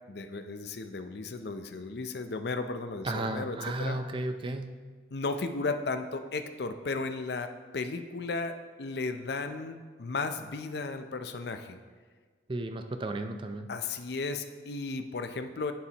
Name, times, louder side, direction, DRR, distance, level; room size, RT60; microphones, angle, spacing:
voice 1, 0.1-4.0 5.1-11.8 13.7-15.7, left 3 dB, 60° left, 8 dB, 0.5 m, -35 dB
voice 2, 3.0-4.7 12.5-13.7, right 2 dB, 25° right, 7 dB, 0.4 m, -34 dB
11.0 x 7.2 x 2.9 m, 1.5 s
head